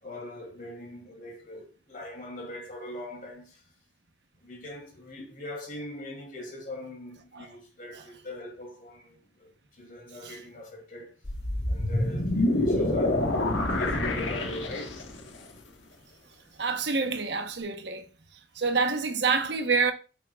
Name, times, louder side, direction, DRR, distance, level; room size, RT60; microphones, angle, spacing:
voice 1, 0.0-3.6 4.4-11.2 11.7-15.0, left 1 dB, 45° left, 2.7 m, -41 dB
sound 1, 11.2-15.2, left 1 dB, 90° left, 1.5 m, -27 dB
voice 2, 16.6-18.0 18.6-19.9, right 4 dB, 65° right, 1.1 m, -27 dB
9.5 x 7.2 x 2.4 m
head